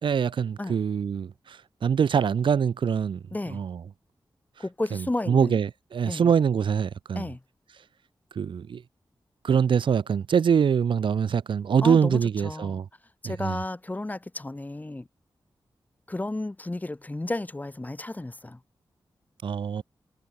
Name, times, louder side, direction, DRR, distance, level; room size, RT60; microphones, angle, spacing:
voice 1, 0.0-3.2 3.5-3.8 4.9-7.3 8.4-8.8 9.4-12.9 13.2-13.6 19.4-19.8, right 7 dB, 85° right, 0.9 m, -24 dB
voice 2, 3.3-3.6 4.6-5.6 6.1-6.3 7.1-7.4 11.8-12.8 13.2-15.1 16.1-18.6, left 2 dB, 20° left, 6.3 m, -32 dB
wide cardioid pair, 110°, 8 cm